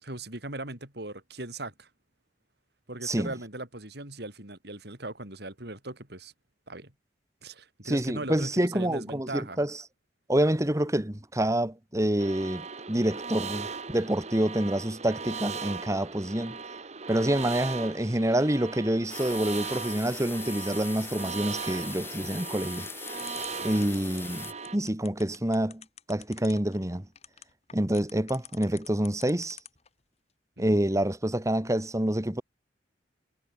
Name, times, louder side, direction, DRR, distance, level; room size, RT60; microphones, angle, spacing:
voice 1, 0.0-1.9 2.9-6.3 6.7-6.9 7.4-9.6 23.6-24.0 30.6-30.8, right 2 dB, 65° right, 5.6 m, -39 dB
voice 2, 3.0-3.3 7.8-9.8 10.3-16.6 17.1-22.9 23.6-27.1 27.7-29.6 30.6-32.4, right 1 dB, 15° right, 1.6 m, -27 dB
sound 1, 12.2-24.8, right 5 dB, 40° right, 1.5 m, -38 dB
sound 2, 19.1-24.5, left 4 dB, 15° left, 3.0 m, -41 dB
sound 3, 22.7-29.9, left 10 dB, 35° left, 4.0 m, -46 dB
head